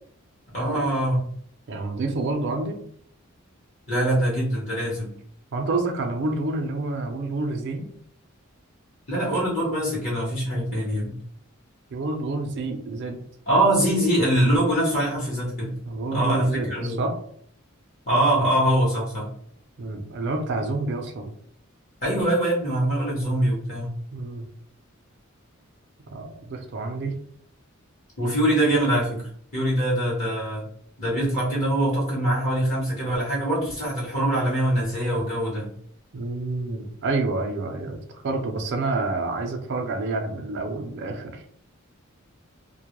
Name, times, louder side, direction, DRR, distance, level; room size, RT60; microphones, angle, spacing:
voice 1, 0.5-1.3 3.9-5.1 9.1-11.2 13.5-15.8 16.1-17.0 18.0-19.3 22.0-23.9 28.2-30.6 31.0-35.7, right 1 dB, 35° left, -7 dB, 0.9 m, -23 dB
voice 2, 1.7-2.8 5.5-7.9 11.9-13.2 15.8-17.1 19.8-21.3 24.1-24.4 26.1-27.1 36.1-41.4, right 3 dB, 60° right, 3 dB, 0.4 m, -28 dB
2.2 x 2.1 x 2.9 m, 0.62 s
head